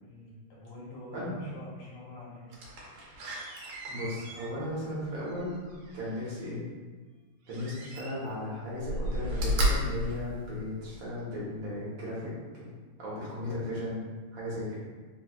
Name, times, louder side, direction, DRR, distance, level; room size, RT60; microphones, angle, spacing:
voice 1, 0.0-2.5, left 1 dB, 80° left, -6 dB, 1.9 m, -46 dB
Slam, 2.5-6.4 7.5-8.4 8.8-11.1 11.6-11.7, equal, 85° right, 1.7 m, -33 dB
voice 2, 3.9-5.6 5.9-6.6 7.5-12.3 12.6-12.7 13.0-14.0 14.3-14.7, left 1 dB, 65° right, -7 dB, 1.7 m, -36 dB
4.2 x 3.0 x 2.3 m, 1.4 s
omnidirectional pair, 2.4 m